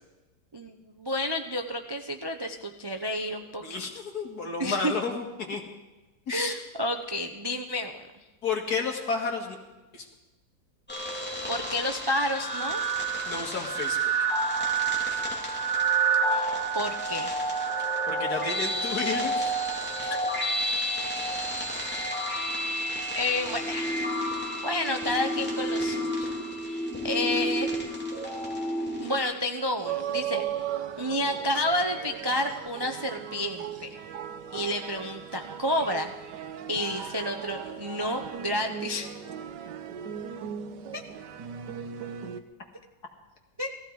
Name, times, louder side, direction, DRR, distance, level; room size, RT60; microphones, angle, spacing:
voice 1, 0.5-3.8 4.6-4.9 6.3-8.0 11.5-12.8 16.3-17.4 20.0-20.1 23.1-23.9 24.6-26.3 26.7-26.8 27.0-27.7 29.0-34.0 34.5-36.1 36.7-39.1 40.9-41.0 43.6-43.7, left 1 dB, 35° right, 4 dB, 0.3 m, -30 dB
voice 2, 3.6-5.6 6.3-6.5 8.4-9.6 9.9-10.1 13.3-14.0 18.1-19.5 31.0-31.1, left 4 dB, 60° left, 1 dB, 2.5 m, -31 dB
sound 1, 10.9-29.2, right 2 dB, 5° left, 2.6 m, -29 dB
sound 2, 29.8-42.4, right 9 dB, 80° right, 1.5 m, -37 dB
17.5 x 15.0 x 4.8 m, 1.1 s
omnidirectional pair, 1.8 m